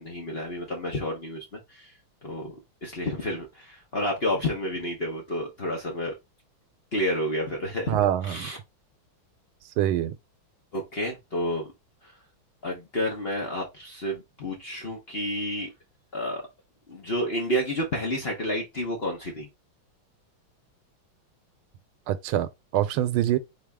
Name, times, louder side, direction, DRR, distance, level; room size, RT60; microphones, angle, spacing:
voice 1, 0.0-1.9 2.2-2.5 2.8-6.1 6.9-8.0 8.2-8.6 10.7-11.7 12.6-15.7 16.1-16.4 16.9-19.5, left 1 dB, 35° left, 1.0 m, -30 dB
voice 2, 7.9-8.5 9.8-10.1 22.1-23.4, right 12 dB, 85° right, 1.4 m, -25 dB
4.1 x 3.5 x 3.4 m
omnidirectional pair, 2.3 m